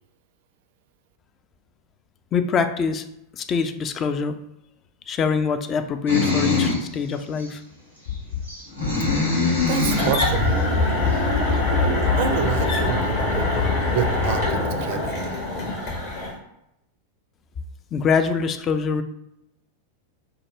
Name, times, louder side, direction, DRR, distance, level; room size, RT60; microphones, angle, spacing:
voice 1, 2.3-3.1 3.3-4.4 5.1-7.6 17.9-19.0, left 5 dB, 25° left, 9 dB, 0.3 m, -24 dB
sound 1, 6.1-6.9 7.4-7.5 8.4-10.2, left 4 dB, 90° left, 1.4 m, -22 dB
sound 2, 8.1-8.4 8.8-9.1 9.6-9.9 10.3-10.6 11.1-11.4 11.8-12.1 12.6-12.9 13.3-13.6, left 10 dB, 65° left, 0.8 m, -30 dB
voice 2, 9.6-10.5 12.2-15.4, right 7 dB, 50° right, 7 dB, 0.4 m, -28 dB
sound 3, 9.9-16.3, left 2 dB, 45° left, 1.1 m, -23 dB
4.7 x 2.0 x 3.3 m, 0.82 s
figure-of-eight pair, 90°, 0 cm